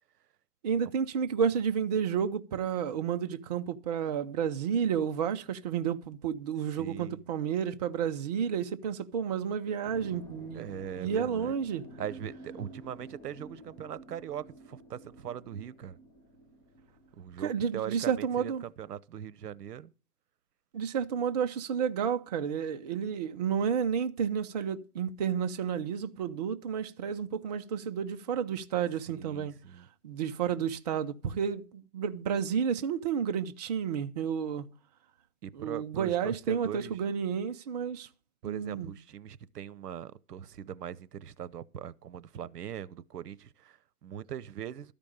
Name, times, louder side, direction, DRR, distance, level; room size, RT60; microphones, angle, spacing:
voice 1, 0.6-11.8 17.4-18.6 20.7-29.5 30.0-34.7 35.5-38.1 38.5-38.9, right 7 dB, 30° right, 0.5 m, -31 dB
voice 2, 6.8-7.2 10.5-11.5 12.0-16.0 17.2-19.9 29.1-29.9 35.4-36.9 38.4-44.9, right 9 dB, 90° right, 0.8 m, -41 dB
sound 1, 9.8-17.4, equal, 10° left, 0.8 m, -50 dB
13.0 x 5.2 x 8.5 m
hypercardioid pair, 150°, 46 cm